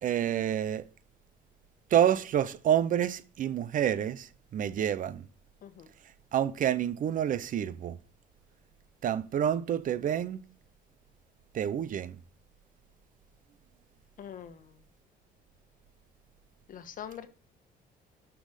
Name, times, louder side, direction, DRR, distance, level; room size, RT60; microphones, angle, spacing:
voice 1, 0.0-0.8 1.9-5.3 6.3-8.0 9.0-10.4 11.5-12.2, right 10 dB, 50° right, 0.8 m, -28 dB
voice 2, 14.2-14.7 16.7-17.3, left 9 dB, 55° left, 1.4 m, -43 dB
11.5 x 6.1 x 5.1 m
cardioid pair, 110°, 17 cm